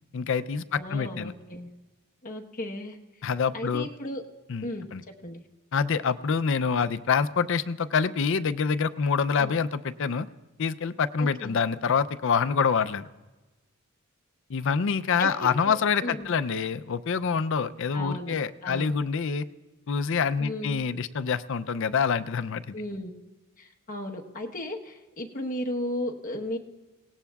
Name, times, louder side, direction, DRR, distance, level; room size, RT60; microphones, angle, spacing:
voice 1, 0.1-1.3 3.2-3.9 4.5-5.0 5.7-10.3 10.6-13.1 14.5-19.5 19.9-22.8, left 6 dB, 60° left, 12 dB, 0.5 m, -26 dB
voice 2, 0.7-1.7 2.2-3.0 3.5-4.2 4.6-5.4 9.4-9.5 11.2-11.6 15.2-15.7 16.0-16.3 17.9-18.3 18.6-18.9 20.4-20.8 22.7-23.2 23.6-26.6, left 1 dB, 40° left, 1 dB, 1.1 m, -35 dB
25.5 x 18.0 x 2.3 m, 1.2 s
head